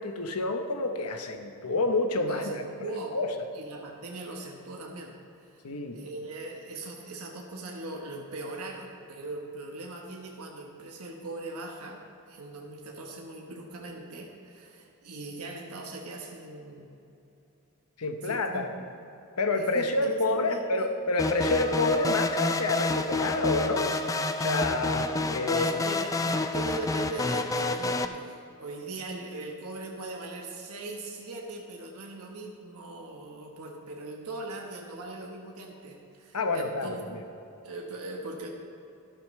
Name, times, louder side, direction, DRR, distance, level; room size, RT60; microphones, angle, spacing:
voice 1, 0.0-2.6 3.1-3.3 5.6-6.0 18.0-18.7 19.4-23.9 24.4-25.8 36.3-37.2, left 2 dB, 85° left, 6 dB, 1.0 m, -28 dB
voice 2, 2.1-3.2 3.5-5.2 5.5-5.6 5.9-12.0 12.3-17.0 18.2-18.9 19.5-20.9 25.5-37.1 37.6-38.5, right 2 dB, 75° right, 0 dB, 1.3 m, -40 dB
sound 1, 21.2-28.1, left 2 dB, 15° left, 0.3 m, -28 dB
12.5 x 12.5 x 3.3 m, 2.8 s
head